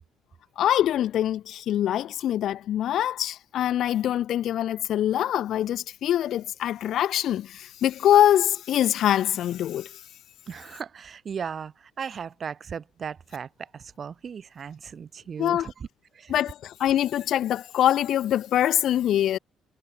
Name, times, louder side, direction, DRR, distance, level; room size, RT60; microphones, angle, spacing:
voice 1, 0.6-9.9 15.4-15.7 16.3-19.4, left 11 dB, 65° left, 0.5 m, -24 dB
voice 2, 10.5-15.9 16.1-16.3, right 7 dB, 45° right, 2.0 m, -37 dB
supercardioid pair, 70°, 0 cm